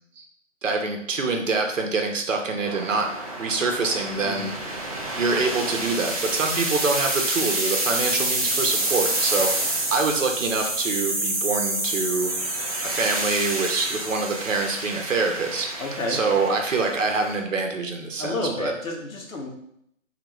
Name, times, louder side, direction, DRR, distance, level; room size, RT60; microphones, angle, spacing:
voice 1, 0.6-3.1 3.4-4.5 5.1-12.3 12.8-15.7 16.1-18.7, right 3 dB, 70° right, 3 dB, 1.0 m, -25 dB
sound 1, 2.6-17.4, right 2 dB, 30° right, 0.5 m, -28 dB
voice 2, 15.8-16.2 18.2-19.5, left 2 dB, 85° left, 1 dB, 1.3 m, -30 dB
4.9 x 2.9 x 3.1 m, 0.73 s
hypercardioid pair, 160°, 40 cm